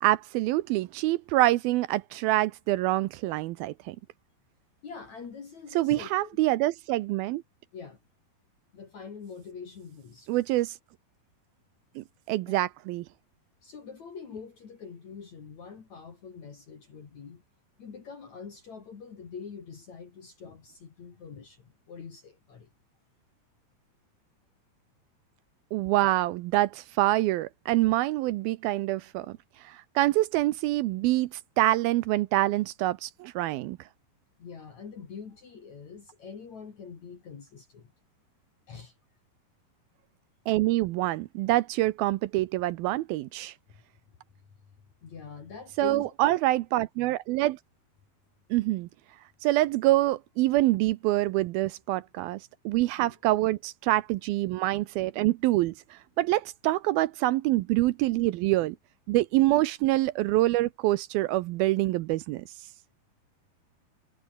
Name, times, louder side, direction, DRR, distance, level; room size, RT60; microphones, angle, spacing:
voice 1, 0.0-4.0 5.8-7.4 10.3-10.8 12.0-13.1 25.7-29.4 29.6-33.8 40.5-43.5 45.8-47.6 48.5-48.9 49.4-52.4 52.7-58.8 59.1-62.5, right 17 dB, 80° right, 2.4 m, -26 dB
voice 2, 4.8-6.4 7.7-8.0 8.7-10.3 12.5-12.6 13.6-17.4 17.8-22.7 34.4-37.9 38.7-38.9 45.0-46.1 53.0-53.1, left 6 dB, 50° left, 4.0 m, -44 dB
omnidirectional pair, 4.6 m